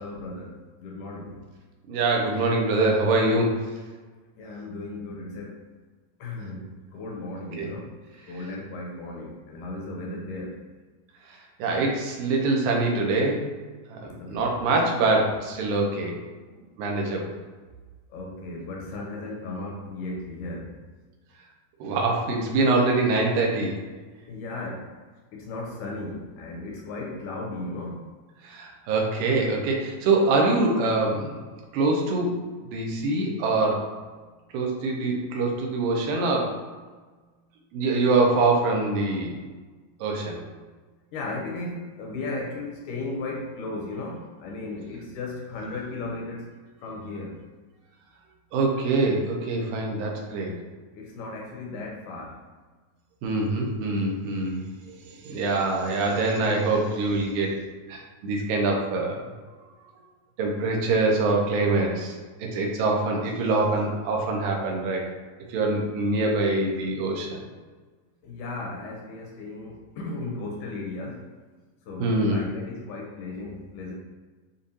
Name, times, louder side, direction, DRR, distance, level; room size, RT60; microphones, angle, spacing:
voice 1, 0.0-1.4 4.4-5.6 6.2-8.0 8.3-10.6 14.0-14.5 16.5-16.7 18.1-20.8 24.3-24.9 25.3-28.0 41.1-46.5 46.8-47.4 50.9-52.4 68.2-71.3 71.9-73.9, left 2 dB, 80° left, -1 dB, 1.9 m, -36 dB
voice 2, 1.9-3.6 7.6-7.7 11.3-13.5 13.9-16.2 16.8-17.3 21.8-23.8 28.4-31.4 31.7-32.4 32.6-33.8 34.5-36.5 37.7-39.3 40.0-40.4 48.5-50.5 53.2-57.6 57.9-59.2 60.4-65.1 65.5-67.4 72.0-72.5, right 3 dB, 90° right, 0 dB, 2.4 m, -24 dB
6.7 x 2.5 x 2.7 m, 1.4 s
omnidirectional pair, 3.9 m